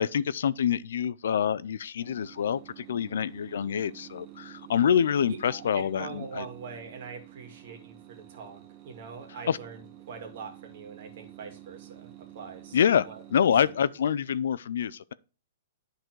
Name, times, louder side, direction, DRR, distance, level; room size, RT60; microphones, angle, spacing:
voice 1, 0.0-6.4 9.5-9.6 12.7-15.1, left 8 dB, 75° left, 0.4 m, -26 dB
sound 1, 2.0-14.4, right 14 dB, 30° right, 1.1 m, -50 dB
voice 2, 5.3-13.2 13.6-13.7, right 5 dB, 55° right, 2.1 m, -43 dB
10.5 x 3.9 x 4.5 m
hypercardioid pair, 155°, 0 cm